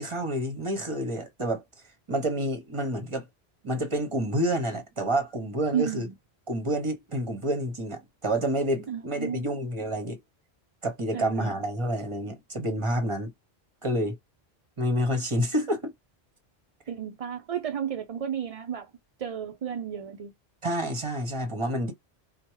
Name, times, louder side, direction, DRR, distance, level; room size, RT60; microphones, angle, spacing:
voice 1, 0.0-1.6 2.1-3.3 3.6-6.1 6.5-10.2 10.8-13.3 13.8-14.2 14.8-15.9 20.6-21.9, right 1 dB, 30° right, 1.0 m, -28 dB
voice 2, 5.7-6.1 8.9-9.5 11.1-11.6 16.9-18.9 19.2-20.3, right 8 dB, 50° right, 0.4 m, -32 dB
4.4 x 2.2 x 3.0 m
omnidirectional pair, 1.1 m